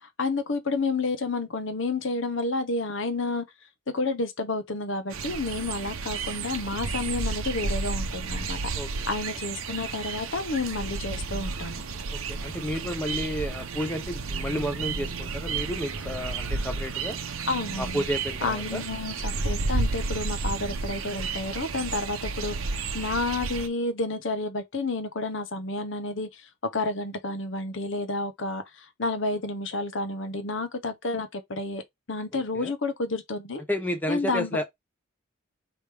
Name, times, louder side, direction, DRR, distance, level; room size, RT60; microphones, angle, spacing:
voice 1, 0.0-3.4 3.9-8.6 8.9-11.8 17.5-18.0 18.4-31.8 32.1-33.6 34.1-34.6, left 3 dB, 65° left, 0.8 m, -30 dB
sound 1, 5.1-23.7, right 4 dB, 85° right, 0.8 m, -32 dB
voice 2, 12.1-17.2 17.8-18.8 32.3-32.7 33.7-34.6, equal, 10° left, 0.7 m, -31 dB
4.9 x 3.0 x 3.4 m
head